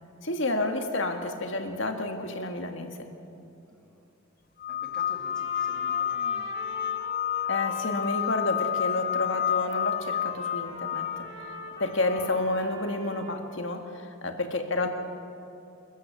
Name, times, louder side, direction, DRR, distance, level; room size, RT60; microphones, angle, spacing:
voice 1, 0.2-3.1 7.5-14.9, left 2 dB, 70° left, 5 dB, 1.9 m, -30 dB
voice 2, 3.7-4.1 4.7-6.5, equal, 5° left, -1 dB, 2.5 m, -50 dB
sound 1, 4.6-12.4, left 10 dB, 45° left, 0.5 m, -30 dB
Trumpet, 5.0-13.4, right 2 dB, 70° right, 5.2 m, -44 dB
27.0 x 14.0 x 7.6 m, 2.8 s
head